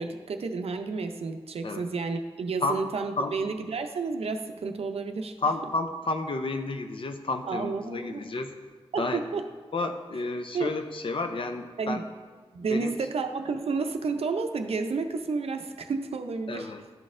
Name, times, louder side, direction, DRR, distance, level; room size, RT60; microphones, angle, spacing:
voice 1, 0.0-5.4 7.5-8.2 8.9-9.5 10.5-10.7 11.8-12.0 12.5-16.7, right 4 dB, 80° right, 6 dB, 0.5 m, -31 dB
voice 2, 5.4-8.5 9.0-9.2 9.7-12.0 12.7-12.9 16.5-16.8, left 3 dB, 60° left, 6 dB, 0.6 m, -31 dB
11.5 x 4.1 x 2.5 m, 1.5 s
wide cardioid pair, 105°, 10 cm